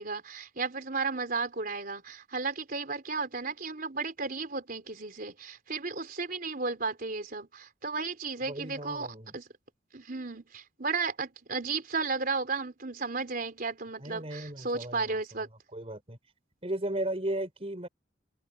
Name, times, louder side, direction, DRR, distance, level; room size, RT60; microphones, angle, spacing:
voice 1, 0.0-9.5 9.9-15.5, right 4 dB, 50° right, 4.0 m, -34 dB
voice 2, 8.5-9.3 14.0-15.2 15.7-16.2 16.6-17.9, right 1 dB, 30° right, 5.6 m, -35 dB
head